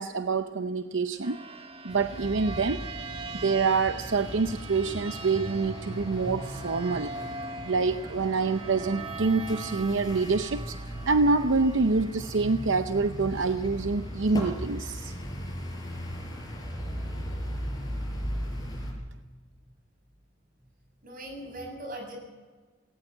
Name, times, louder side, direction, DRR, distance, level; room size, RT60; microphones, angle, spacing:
voice 1, 0.0-1.4 1.8-2.8 3.4-7.1 7.7-15.1, right 4 dB, 80° right, 9 dB, 0.7 m, -26 dB
sound 1, 1.2-14.4, right 3 dB, 30° right, 1.2 m, -42 dB
sound 2, 1.9-18.9, equal, 20° left, 5.4 m, -37 dB
voice 2, 21.0-22.1, right 1 dB, 50° right, 2 dB, 7.6 m, -39 dB
19.0 x 19.0 x 7.4 m, 1.4 s
head